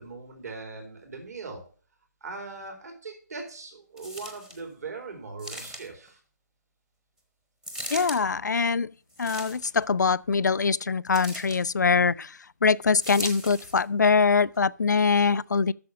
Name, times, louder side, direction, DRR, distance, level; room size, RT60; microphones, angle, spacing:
voice 1, 0.0-1.6 2.2-6.2 11.8-12.2, right 4 dB, 60° right, 4.4 m, -40 dB
sound 1, 4.0-4.6 5.4-6.1 7.6-8.2 9.1-9.8 11.1-11.6 13.0-13.8 14.5-14.6, equal, 5° right, 0.8 m, -38 dB
voice 2, 7.9-8.9 9.2-15.7, left 5 dB, 75° left, 0.4 m, -23 dB
8.6 x 6.8 x 7.1 m
figure-of-eight pair, 155°, 10 cm